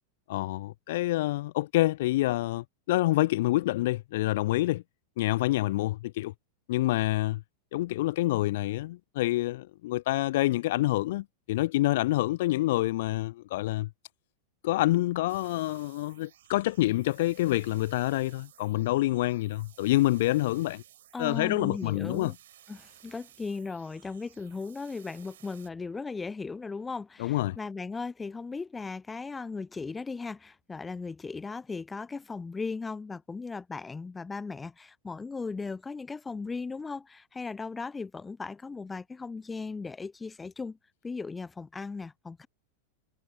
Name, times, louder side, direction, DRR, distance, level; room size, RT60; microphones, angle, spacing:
voice 1, 0.3-4.8 5.2-6.3 6.7-7.4 7.7-13.9 14.6-20.8 21.2-22.3 27.2-27.6, left 17 dB, 55° left, 0.5 m, -27 dB
sound 1, 15.3-25.7, right 12 dB, 60° right, 7.6 m, -57 dB
voice 2, 21.1-22.3 22.7-40.8 41.0-42.5, left 4 dB, 15° left, 0.7 m, -37 dB
figure-of-eight pair, 90°, 0 cm